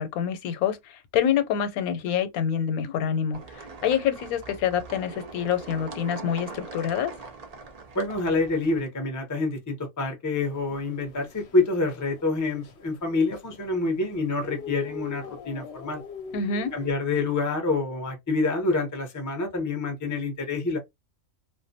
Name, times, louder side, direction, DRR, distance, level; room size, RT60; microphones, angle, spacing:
voice 1, 0.0-7.1 16.3-16.7, left 8 dB, 90° left, 1.0 m, -26 dB
sound 1, 3.3-8.8, right 4 dB, 70° right, 0.3 m, -42 dB
voice 2, 7.9-16.0 16.7-20.8, left 3 dB, 25° left, 0.4 m, -27 dB
sound 2, 10.4-16.9, left 6 dB, 65° left, 0.8 m, -43 dB
2.4 x 2.1 x 2.6 m
omnidirectional pair, 1.5 m